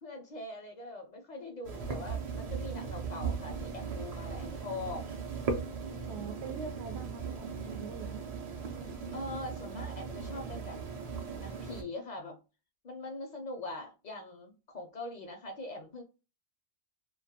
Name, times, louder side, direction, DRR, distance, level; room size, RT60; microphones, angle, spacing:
voice 1, 0.0-5.1 5.8-6.3 9.1-10.8 11.4-12.4 12.8-16.0, left 2 dB, 55° left, 0.5 m, -42 dB
sound 1, 1.6-11.8, right 5 dB, 50° right, 0.5 m, -38 dB
voice 2, 6.1-8.2, right 5 dB, 90° right, 0.9 m, -43 dB
2.2 x 2.1 x 2.7 m
omnidirectional pair, 1.1 m